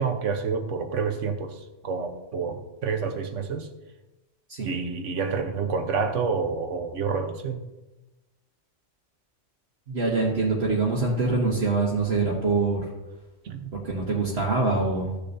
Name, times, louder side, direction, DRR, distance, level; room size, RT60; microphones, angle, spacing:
voice 1, 0.0-3.7 4.6-7.6 13.4-13.7, right 5 dB, 80° right, 6 dB, 1.3 m, -28 dB
voice 2, 9.9-12.8 13.8-15.1, right 3 dB, 60° right, -4 dB, 1.6 m, -24 dB
14.5 x 6.8 x 2.7 m, 1.0 s
omnidirectional pair, 1.3 m